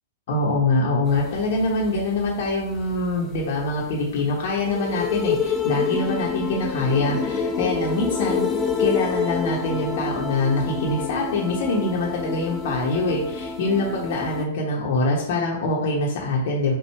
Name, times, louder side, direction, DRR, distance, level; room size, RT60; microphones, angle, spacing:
voice 1, 0.3-16.8, left 2 dB, 60° left, -3 dB, 0.9 m, -24 dB
sound 1, 1.1-14.5, left 5 dB, 20° left, 0.6 m, -28 dB
4.6 x 2.4 x 4.4 m, 0.76 s
hypercardioid pair, 110°, 0 cm